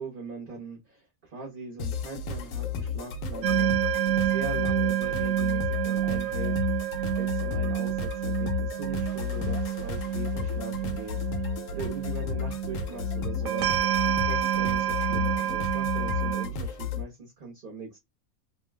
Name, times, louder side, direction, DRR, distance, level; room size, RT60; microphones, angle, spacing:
voice 1, 0.0-3.8 4.1-11.2 11.7-18.0, right 3 dB, 40° right, 1.0 m, -41 dB
sound 1, 1.8-17.0, left 6 dB, 70° left, 0.9 m, -33 dB
sound 2, 3.4-16.5, right 11 dB, 75° right, 1.0 m, -29 dB
2.7 x 2.2 x 3.2 m
omnidirectional pair, 1.5 m